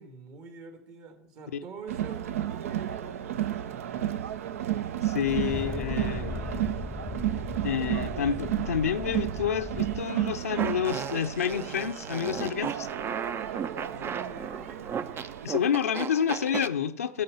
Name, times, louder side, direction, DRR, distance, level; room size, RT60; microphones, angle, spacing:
voice 1, 0.0-4.9 7.9-8.3 13.9-14.9, right 5 dB, 55° right, 6 dB, 2.3 m, -46 dB
Crowd, 1.9-15.5, right 12 dB, 75° right, 0.5 m, -33 dB
voice 2, 5.0-6.6 7.6-12.9 15.4-17.2, left 8 dB, 85° left, 7 dB, 0.6 m, -29 dB
sound 1, 5.2-10.0, left 3 dB, 10° left, 0.6 m, -38 dB
Fart, 10.6-16.7, right 7 dB, 30° right, 0.5 m, -36 dB
14.0 x 5.4 x 7.2 m, 0.82 s
hypercardioid pair, 85°, 8 cm